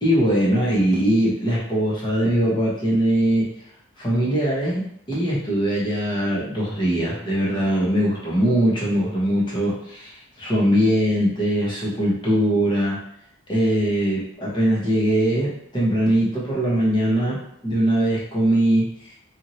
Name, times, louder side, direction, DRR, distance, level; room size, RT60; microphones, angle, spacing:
voice 1, 0.0-3.5 4.0-13.0 13.5-18.9, right 1 dB, 20° left, -7 dB, 0.9 m, -21 dB
2.9 x 2.7 x 2.7 m, 0.72 s
head